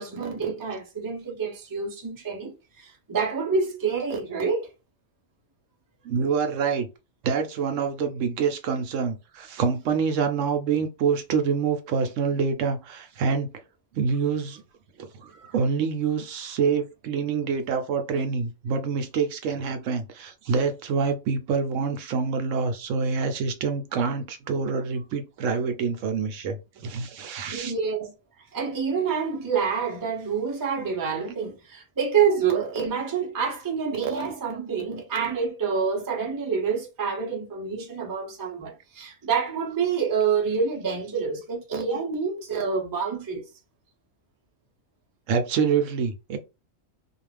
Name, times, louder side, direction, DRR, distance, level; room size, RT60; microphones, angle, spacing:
voice 1, 0.0-4.7 15.3-15.5 27.5-28.1 28.5-43.4, right 6 dB, 25° right, 0.5 m, -27 dB
voice 2, 6.0-6.9 7.2-13.5 13.9-14.6 15.0-15.1 15.5-27.7 45.3-46.4, right 5 dB, 75° right, 0.9 m, -26 dB
2.4 x 2.4 x 3.3 m
omnidirectional pair, 1.4 m